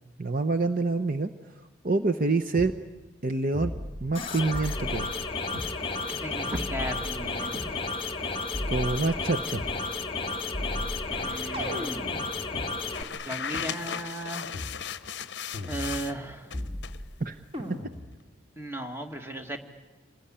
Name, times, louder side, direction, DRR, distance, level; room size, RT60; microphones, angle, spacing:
voice 1, 0.2-1.3 1.8-2.7 3.2-3.7 4.0-5.1 8.7-9.6 17.2-17.4, right 3 dB, 45° right, 8 dB, 0.8 m, -26 dB
sound 1, 2.5-2.7 3.5-4.2 4.5-5.7 6.5-7.7 8.5-9.8 10.5-12.7 13.5-13.6 14.5-14.8 15.5-16.2 16.5-17.2 17.5-18.2, left 1 dB, 30° right, 2.4 m, -36 dB
sound 2, 4.1-13.0, left 3 dB, 25° left, 1.4 m, -33 dB
voice 2, 6.1-7.8 11.1-12.0 13.3-14.5 15.7-16.5 18.6-19.6, right 1 dB, 10° right, 5 dB, 1.8 m, -36 dB
sound 3, 12.9-16.1 16.5-17.0, left 8 dB, 55° left, 0.8 m, -36 dB
26.5 x 19.0 x 10.0 m, 1.2 s
head